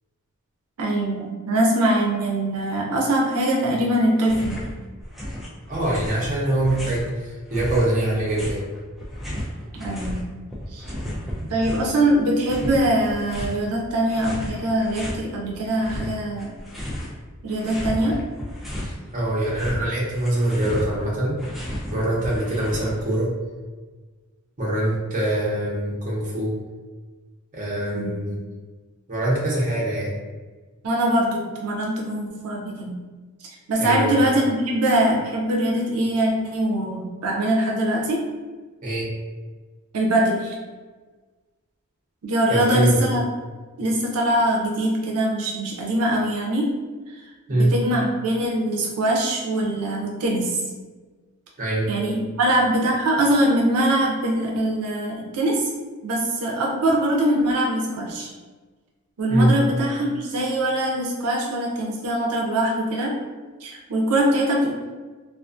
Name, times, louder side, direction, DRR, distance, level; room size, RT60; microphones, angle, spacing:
voice 1, 0.8-4.6 9.8-10.2 10.7-10.9 11.5-16.6 17.4-18.2 27.9-28.1 30.8-33.0 33.7-38.3 39.9-40.5 42.2-43.2 43.8-46.7 47.5-50.6 51.9-55.7 56.0-58.3 59.2-63.1 63.6-64.8, right 1 dB, 90° right, -1 dB, 0.5 m, -22 dB
sound 1, 4.2-4.7 5.0-7.1 7.5-10.2 10.5-12.0 12.4-13.6 14.1-15.2 15.6-17.2 17.5-19.0 19.3-23.2, equal, ahead, 0.3 m, -33 dB
voice 2, 5.7-8.6 18.8-21.4 21.9-23.3 24.6-26.5 27.5-28.4 29.1-30.1 33.8-34.2 38.8-39.1 42.5-43.0 47.5-47.7 51.6-51.9 59.3-59.5, right 1 dB, 35° right, -5 dB, 0.7 m, -23 dB
2.4 x 2.3 x 2.4 m, 1.3 s
head